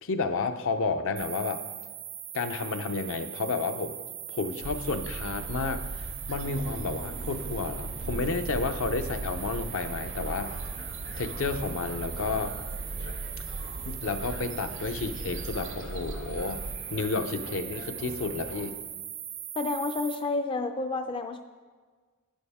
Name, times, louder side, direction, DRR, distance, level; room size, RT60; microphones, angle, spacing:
voice 1, 0.0-1.6 2.3-3.9 4.3-10.5 11.2-12.6 13.9-16.6 16.9-18.8, left 3 dB, 65° left, 8 dB, 0.6 m, -31 dB
sound 1, 1.2-20.2, right 10 dB, 85° right, 1.1 m, -40 dB
sound 2, 4.6-16.8, right 2 dB, 60° right, 0.6 m, -39 dB
sound 3, 6.4-18.6, left 1 dB, 85° left, 1.8 m, -45 dB
voice 2, 19.6-21.4, left 3 dB, 25° left, 7 dB, 0.4 m, -30 dB
11.5 x 8.6 x 3.5 m, 1.5 s
head